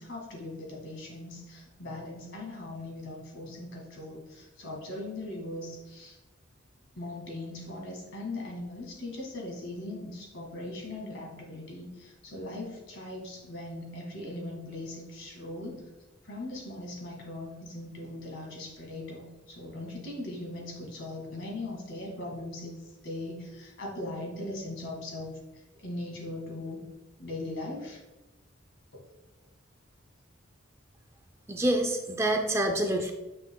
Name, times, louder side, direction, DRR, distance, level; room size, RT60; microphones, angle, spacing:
voice 1, 0.0-6.2 7.0-15.8 16.2-22.8 23.0-25.4 25.8-26.9 27.2-28.0, left 2 dB, 65° left, -1 dB, 1.9 m, -39 dB
voice 2, 31.5-33.1, right 1 dB, 15° right, 4 dB, 0.4 m, -27 dB
7.6 x 6.0 x 2.3 m, 1.0 s
head